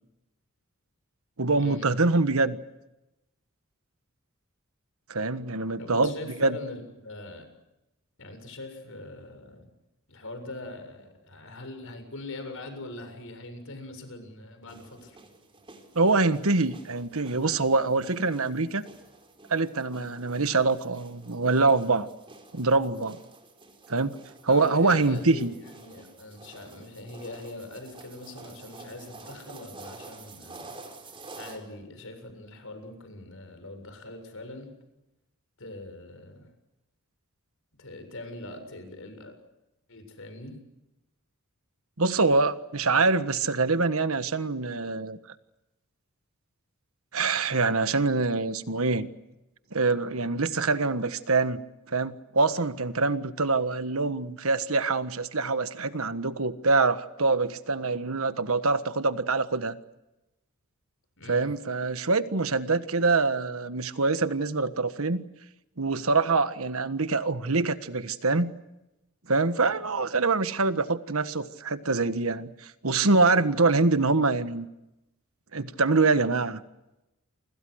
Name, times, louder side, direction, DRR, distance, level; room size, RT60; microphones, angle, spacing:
voice 1, 1.4-2.6 5.1-6.1 6.4-6.6 15.9-18.8 19.5-22.1 22.5-23.2 23.9-24.2 24.4-25.5 42.0-45.2 47.1-49.1 49.7-51.6 51.9-59.8 61.3-65.2 65.8-68.5 69.3-74.7 75.5-76.6, right 3 dB, 70° right, 12 dB, 1.5 m, -25 dB
voice 2, 5.8-7.5 8.2-9.7 10.1-15.2 24.5-30.7 31.4-34.7 35.6-36.5 37.8-39.4 39.9-40.6 61.2-61.5, left 2 dB, 65° left, 7 dB, 7.3 m, -42 dB
sound 1, 14.7-31.6, right 3 dB, 25° right, 4.6 m, -49 dB
28.5 x 25.5 x 6.5 m, 0.94 s
head